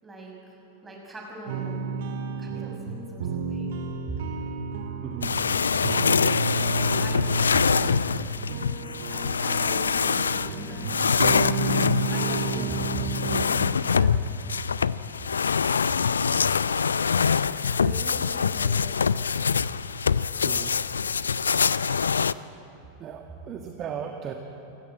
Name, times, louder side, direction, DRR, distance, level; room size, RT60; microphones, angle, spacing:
voice 1, 0.0-0.6 0.8-1.9 2.4-3.8 4.1-4.2 6.5-11.0 12.1-13.6 13.9-14.3 17.8-18.9, right 2 dB, 10° right, -1 dB, 6.3 m, -39 dB
sound 1, 1.5-13.4, right 4 dB, 55° right, 1.9 m, -31 dB
voice 2, 5.0-5.3 12.5-12.8 20.4-20.8 23.0-24.3, right 8 dB, 30° right, 3 dB, 1.6 m, -36 dB
sound 2, 5.2-22.3, left 6 dB, 70° left, 0.4 m, -25 dB
27.0 x 15.0 x 9.2 m, 2.9 s
figure-of-eight pair, 90°, 0 cm